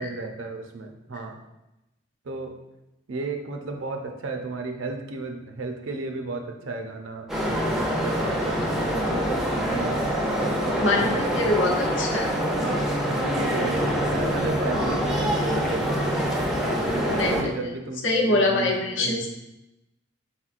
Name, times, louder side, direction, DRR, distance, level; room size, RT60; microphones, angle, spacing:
voice 1, 0.0-1.4 2.3-2.6 3.1-10.1 10.4-11.6 12.6-16.3 16.8-19.3, right 3 dB, 80° right, 4 dB, 0.5 m, -34 dB
sound 1, 7.3-17.4, equal, ahead, 0.4 m, -25 dB
voice 2, 10.8-12.3 17.2-17.5 18.0-19.3, left 2 dB, 70° left, 1 dB, 0.7 m, -24 dB
4.3 x 4.1 x 2.4 m, 0.93 s
head